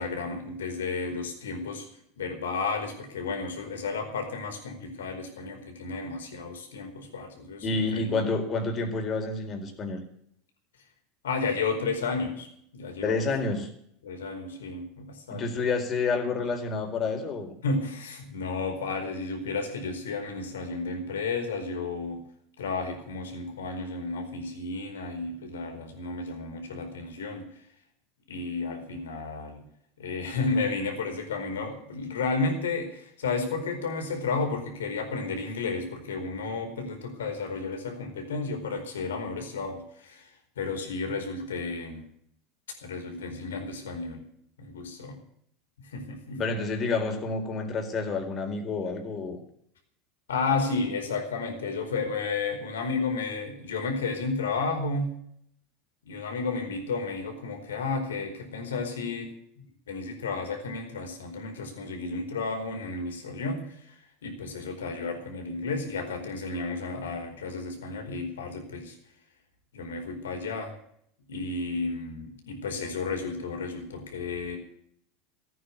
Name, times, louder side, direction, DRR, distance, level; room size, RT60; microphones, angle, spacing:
voice 1, 0.0-1.9 2.2-8.2 11.2-12.5 12.7-13.2 14.0-15.5 17.6-22.2 22.6-27.5 28.3-29.6 30.0-40.3 40.6-42.0 42.8-44.2 44.6-45.2 45.9-46.4 50.3-55.1 56.1-59.3 59.9-63.7 64.2-69.0 69.7-70.7 71.3-74.6, left 4 dB, 85° left, 4 dB, 4.5 m, -32 dB
voice 2, 7.6-10.0 13.0-13.7 15.3-17.5 46.4-49.4, left 3 dB, 35° left, 5 dB, 4.4 m, -29 dB
15.5 x 9.5 x 8.4 m, 0.68 s
hypercardioid pair, 90°, 0 cm